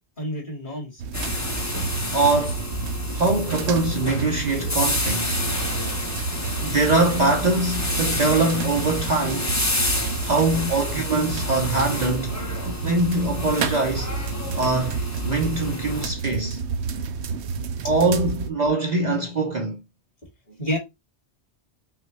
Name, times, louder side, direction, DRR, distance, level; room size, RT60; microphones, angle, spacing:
voice 1, 0.2-1.0 18.8-19.0 20.5-20.8, equal, 45° left, 2.2 m, -30 dB
sound 1, 1.0-18.5, right 5 dB, 75° right, 0.9 m, -30 dB
sound 2, 1.1-16.1, left 1 dB, 15° left, 0.8 m, -29 dB
voice 2, 2.1-2.7 3.1-5.4 6.6-9.5 10.2-12.4 12.6-14.1 14.5-15.0 15.3-16.6 17.8-19.8, right 2 dB, 45° right, 0.7 m, -23 dB
5.6 x 2.4 x 3.1 m
omnidirectional pair, 1.2 m